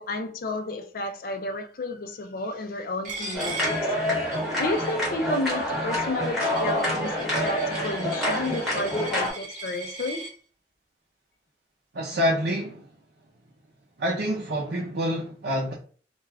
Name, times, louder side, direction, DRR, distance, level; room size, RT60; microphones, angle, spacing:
voice 1, 0.0-3.8 4.6-10.3, left 2 dB, 55° left, 0.4 m, -31 dB
Coin (dropping), 3.1-10.3, right 2 dB, 45° right, 1.0 m, -39 dB
sound 1, 3.3-9.3, equal, ahead, 1.1 m, -27 dB
voice 2, 11.9-12.9 14.0-15.7, equal, 65° right, 0.5 m, -27 dB
2.3 x 2.3 x 3.3 m
head